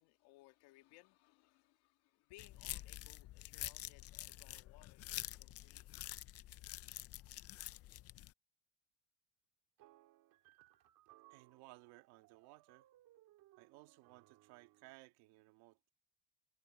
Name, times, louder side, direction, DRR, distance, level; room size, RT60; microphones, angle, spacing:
voice 1, 0.0-6.0, left 19 dB, 80° left, 1.9 m, -65 dB
sound 1, 2.4-8.3, left 15 dB, 40° left, 0.4 m, -48 dB
sound 2, 9.8-15.0, right 16 dB, 60° right, 2.1 m, -67 dB
voice 2, 11.3-12.9 13.6-15.9, right 20 dB, 85° right, 2.0 m, -60 dB
cardioid pair, 150°, 39 cm